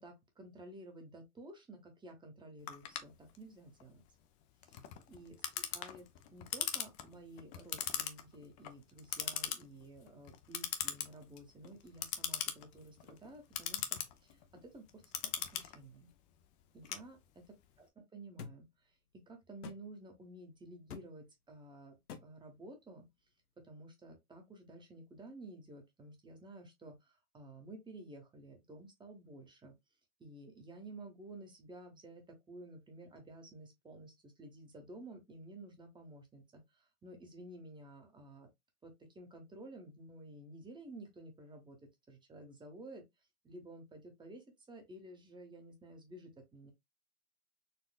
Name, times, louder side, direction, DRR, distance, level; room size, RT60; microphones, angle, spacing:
voice 1, 0.0-4.0 4.6-4.8 5.1-6.1 6.3-15.0 15.5-16.1 16.7-17.2 17.8-18.9 19.3-23.0 23.6-29.7 30.2-38.5 38.8-41.8 42.1-43.0 43.4-46.7, right 1 dB, 10° right, 0.9 m, -53 dB
Clock, 2.7-17.6, left 10 dB, 30° left, 0.5 m, -41 dB
sound 1, 18.4-18.6 19.6-19.8 20.9-21.1 22.1-22.3, left 6 dB, 90° left, 0.7 m, -46 dB
4.2 x 2.4 x 2.3 m
hypercardioid pair, 115°, 45 cm